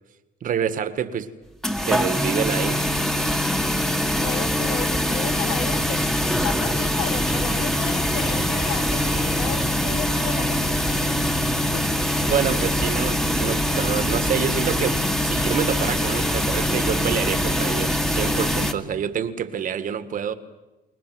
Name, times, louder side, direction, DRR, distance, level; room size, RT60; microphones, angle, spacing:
voice 1, 0.4-1.3 1.9-2.8 12.2-20.3, right 8 dB, 50° right, 1.8 m, -27 dB
sound 1, 1.6-18.7, left 1 dB, ahead, 1.8 m, -23 dB
voice 2, 4.2-6.0 6.4-10.8 11.6-11.8, left 8 dB, 90° left, 3.7 m, -33 dB
29.5 x 20.0 x 7.8 m
cardioid pair, 110°, 17 cm